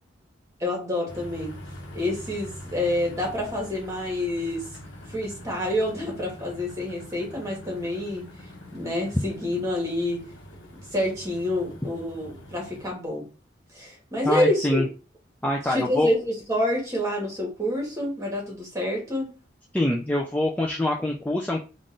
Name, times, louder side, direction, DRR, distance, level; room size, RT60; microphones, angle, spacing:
voice 1, 0.6-1.6 1.9-4.7 5.1-8.2 8.7-10.2 10.9-13.3 13.7-14.8 15.7-19.3, left 1 dB, 15° right, -1 dB, 1.4 m, -27 dB
sound 1, 1.1-12.9, equal, 80° left, 0.9 m, -43 dB
voice 2, 14.2-14.9 15.4-16.1 19.7-21.6, left 1 dB, 10° left, -1 dB, 0.3 m, -25 dB
3.7 x 2.4 x 3.8 m, 0.33 s
head